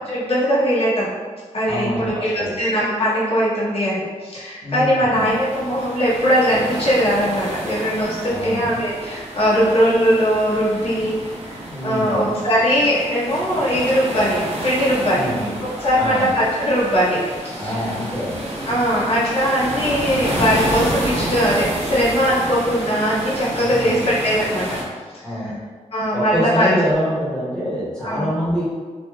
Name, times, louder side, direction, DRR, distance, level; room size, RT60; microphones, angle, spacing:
voice 1, 0.1-1.1 1.5-11.1 11.8-15.3 15.8-17.8 18.7-24.8 25.1-25.5 25.9-26.7 28.0-28.3, equal, 50° left, -9 dB, 0.9 m, -20 dB
voice 2, 1.7-2.5 4.6-5.2 8.3-8.8 11.7-12.3 15.1-15.5 15.9-16.3 17.6-18.4 23.6-24.0 25.2-25.5 26.1-28.6, equal, 5° left, -10 dB, 1.4 m, -25 dB
sound 1, 5.1-24.8, right 1 dB, 55° right, 0.8 m, -29 dB
3.0 x 2.5 x 2.2 m, 1.5 s
wide cardioid pair, 90°, 13 cm